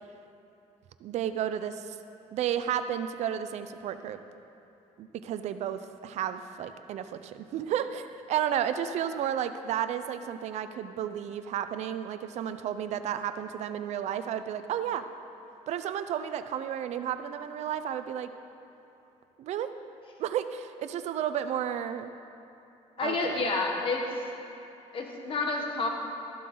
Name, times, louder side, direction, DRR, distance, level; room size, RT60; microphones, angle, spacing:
voice 1, 1.0-2.0 2.3-4.2 5.0-15.1 15.7-18.3 19.4-19.7 20.2-22.1 23.0-23.5, right 9 dB, 60° right, 10 dB, 0.6 m, -32 dB
voice 2, 23.0-24.0 24.9-25.9, left 3 dB, 40° left, 1 dB, 1.7 m, -29 dB
13.5 x 11.5 x 3.9 m, 2.8 s
cardioid pair, 130°, 13 cm